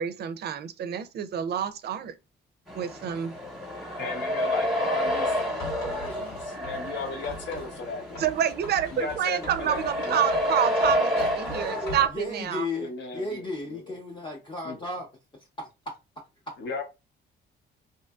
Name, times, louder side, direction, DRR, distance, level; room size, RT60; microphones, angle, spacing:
voice 1, 0.0-2.1 2.7-3.3 8.2-12.7, right 9 dB, 55° right, 0.4 m, -28 dB
sound 1, 2.7-12.1, left 1 dB, ahead, 0.9 m, -29 dB
voice 2, 4.0-8.3 8.9-10.2 12.7-13.8 14.6-14.8 16.6-16.8, left 3 dB, 70° left, 0.9 m, -36 dB
Writing, 5.1-7.7 8.1-10.6 10.8-12.2, left 1 dB, 90° left, 1.5 m, -42 dB
voice 3, 12.1-15.1 15.6-15.9 16.5-16.6, left 2 dB, 25° left, 0.6 m, -34 dB
2.6 x 2.5 x 2.3 m
cardioid pair, 90°, 20 cm